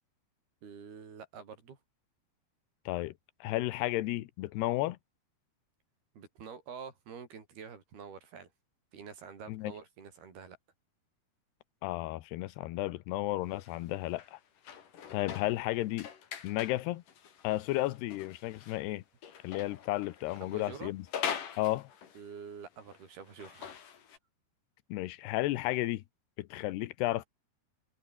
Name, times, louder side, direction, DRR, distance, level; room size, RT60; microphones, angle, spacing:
voice 1, 0.6-1.8 6.1-8.5 8.9-10.6 20.4-20.9 22.1-23.8, right 6 dB, 70° right, 6.5 m, -47 dB
voice 2, 3.4-5.0 9.5-9.7 11.8-14.4 15.1-16.1 16.4-17.0 17.4-19.0 19.4-21.1 21.6-21.9 24.9-26.0 26.4-27.3, left 17 dB, 80° left, 3.0 m, -33 dB
sound 1, 13.5-18.8 19.2-22.4 22.7-24.2, left 8 dB, 55° left, 4.0 m, -43 dB
omnidirectional pair, 4.7 m